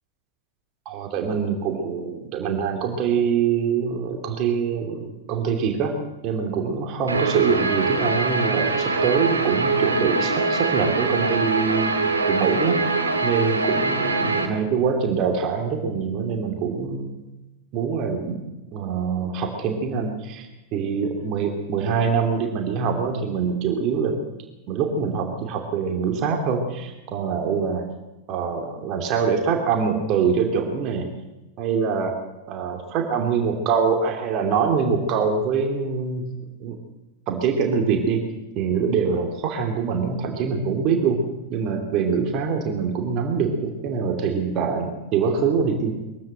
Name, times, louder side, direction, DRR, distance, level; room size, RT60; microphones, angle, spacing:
voice 1, 0.8-5.9 6.2-11.9 12.2-17.2 17.7-18.4 18.7-24.2 24.7-27.8 28.3-31.1 31.6-32.1 32.5-36.3 36.6-36.8 37.3-38.2 38.6-41.2 41.5-45.9, right 6 dB, 40° right, 3 dB, 2.7 m, -24 dB
Guitar, 7.1-14.5, right 3 dB, 75° right, 2.7 m, -23 dB
22.5 x 15.0 x 7.8 m, 1.0 s
figure-of-eight pair, 90°, 0 cm